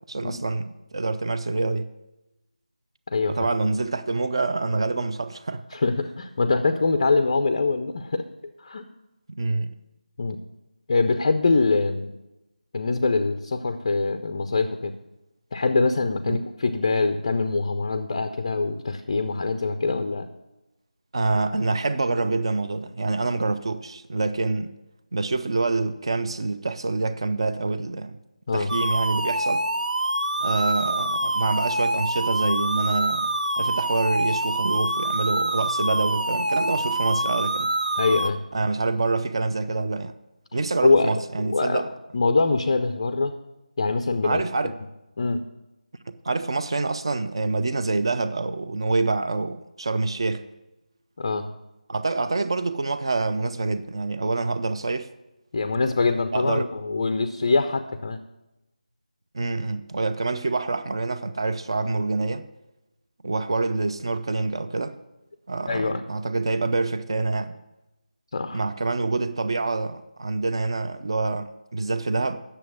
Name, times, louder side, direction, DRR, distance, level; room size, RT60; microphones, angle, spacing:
voice 1, 0.1-1.9 3.3-5.6 9.3-9.7 16.3-16.4 21.1-24.7 25.1-28.2 28.5-29.7 30.4-33.3 33.6-37.7 38.5-40.1 40.5-41.9 44.2-44.7 46.1-50.4 51.9-55.1 56.3-56.7 59.3-62.5 63.2-65.0 65.5-67.6 68.5-72.4, right 3 dB, 35° right, 0.5 m, -26 dB
voice 2, 5.7-8.3 8.6-8.8 10.2-10.4 10.9-12.1 12.7-14.9 15.5-20.3 28.5-28.7 38.0-38.4 40.8-41.1 41.5-41.8 42.1-43.3 43.8-44.7 45.2-45.4 51.2-51.5 55.5-58.2 65.7-66.0 68.3-68.6, left 3 dB, 25° left, 0.4 m, -23 dB
sound 1, 28.7-38.3, right 1 dB, 75° right, 0.7 m, -26 dB
9.3 x 6.9 x 6.9 m
figure-of-eight pair, 165°, 4 cm